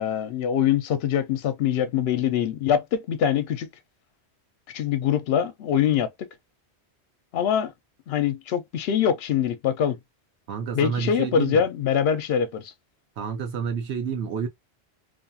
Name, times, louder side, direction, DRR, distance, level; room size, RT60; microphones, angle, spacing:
voice 1, 0.0-3.7 4.7-6.1 7.3-7.7 8.1-10.0 10.7-12.7, left 8 dB, 70° left, 0.8 m, -23 dB
voice 2, 10.5-11.6 13.2-14.5, right 7 dB, 90° right, 1.0 m, -29 dB
2.5 x 2.3 x 2.6 m
omnidirectional pair, 1.1 m